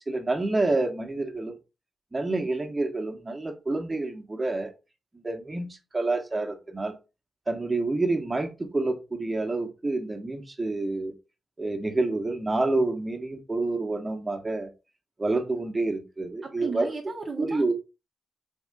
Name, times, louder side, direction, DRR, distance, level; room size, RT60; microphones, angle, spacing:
voice 1, 0.1-1.5 2.1-4.7 5.2-5.7 5.9-6.9 7.5-11.1 11.6-14.7 15.2-16.9 17.4-17.7, right 2 dB, 25° right, 1.2 m, -28 dB
voice 2, 16.4-17.7, right 4 dB, 45° right, 0.8 m, -35 dB
3.7 x 3.5 x 3.6 m
supercardioid pair, 45°, 0 cm